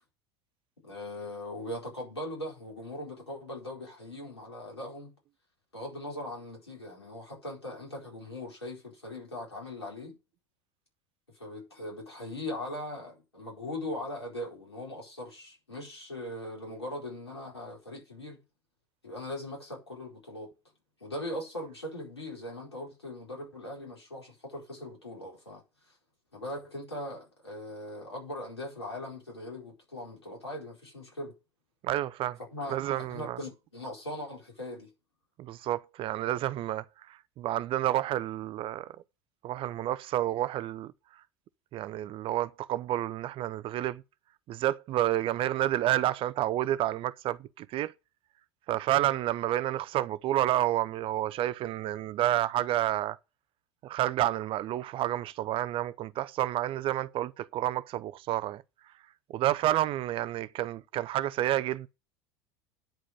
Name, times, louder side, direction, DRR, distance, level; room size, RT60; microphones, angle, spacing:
voice 1, 0.8-5.1 5.7-10.2 11.3-18.4 19.0-20.5 21.0-26.0 26.3-31.3 32.4-34.9, left 1 dB, 90° left, 4.5 m, -40 dB
voice 2, 31.8-32.4 32.7-33.4 35.4-38.9 39.4-40.9 41.7-44.0 44.5-47.9 48.7-53.2 53.8-58.6 59.3-61.9, right 13 dB, 40° right, 0.6 m, -30 dB
10.5 x 5.0 x 8.0 m
figure-of-eight pair, 75°, 13 cm